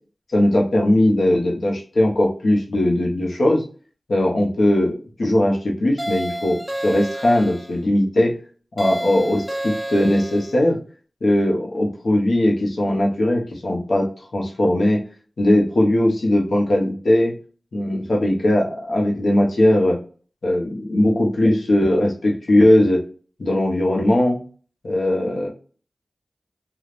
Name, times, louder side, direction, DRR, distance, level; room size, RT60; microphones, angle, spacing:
voice 1, 0.3-3.6 4.1-8.4 8.8-10.8 11.2-15.0 15.4-17.3 17.7-20.0 20.4-23.0 23.4-24.4 24.8-25.5, left 1 dB, 75° left, 0 dB, 0.8 m, -19 dB
sound 1, 6.0-7.7 8.8-10.5, right 1 dB, 5° right, 0.9 m, -30 dB
3.4 x 2.3 x 2.5 m, 0.40 s
wide cardioid pair, 60°, 0 cm